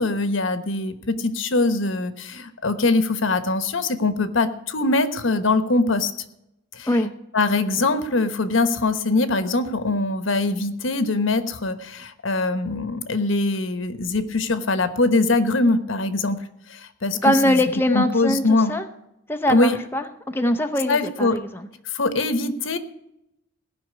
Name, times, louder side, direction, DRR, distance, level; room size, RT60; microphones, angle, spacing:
voice 1, 0.0-6.1 7.3-16.4 17.0-17.6 17.9-18.7 19.5-19.8 20.9-21.4 22.0-22.8, left 3 dB, 75° left, 10 dB, 1.2 m, -22 dB
voice 2, 17.2-18.9 19.3-21.7, left 1 dB, 10° left, 6 dB, 0.7 m, -22 dB
17.0 x 5.9 x 9.6 m, 0.84 s
head